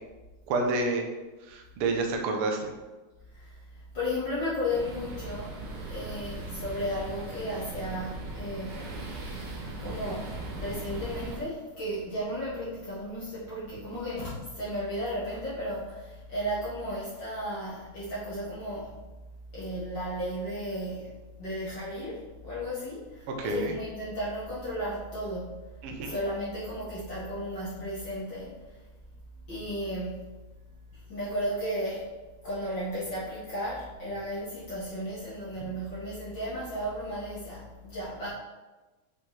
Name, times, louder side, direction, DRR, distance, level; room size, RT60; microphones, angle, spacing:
voice 1, 0.5-1.1 1.5-2.7 23.4-23.8 25.8-26.2, right 3 dB, 65° right, 2 dB, 1.4 m, -29 dB
voice 2, 3.3-5.6 5.9-8.9 9.8-19.0 19.5-25.6 26.0-28.6 29.5-30.3 30.9-32.1 32.4-38.3, equal, 45° left, -9 dB, 1.8 m, -34 dB
sound 1, 4.7-11.4, right 2 dB, 80° right, 2.6 m, -39 dB
7.4 x 5.2 x 3.3 m, 1.2 s
omnidirectional pair, 3.5 m